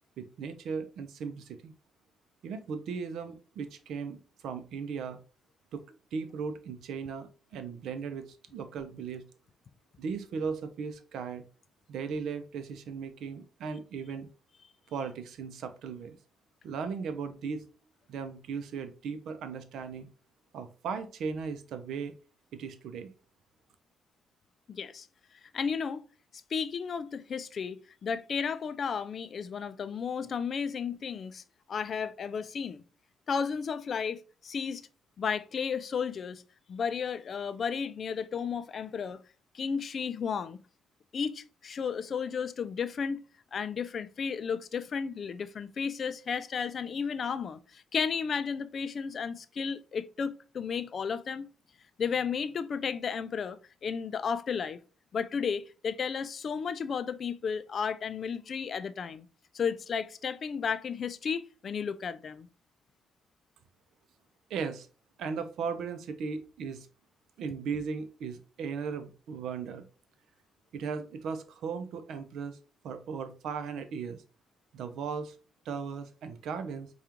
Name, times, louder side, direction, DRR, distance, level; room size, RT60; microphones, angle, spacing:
voice 1, 0.2-1.7 2.4-5.2 5.7-5.8 6.1-9.2 10.0-11.4 11.9-14.3 14.9-16.2 16.6-17.6 18.1-20.1 20.5-22.1 22.5-23.1 64.5-64.9 65.2-66.9 67.4-69.8 70.7-72.6 72.8-74.2 74.7-75.3 75.7-76.9, right 5 dB, 75° right, 0.5 m, -37 dB
voice 2, 24.7-25.1 25.5-26.0 26.5-31.4 31.7-32.8 33.3-34.9 35.2-36.4 36.7-39.2 39.5-40.6 41.1-43.2 43.5-51.5 52.0-54.8 55.1-59.3 59.5-62.5, left 6 dB, 50° left, 0.3 m, -33 dB
4.8 x 2.3 x 2.9 m
cardioid pair, 90°, 0 cm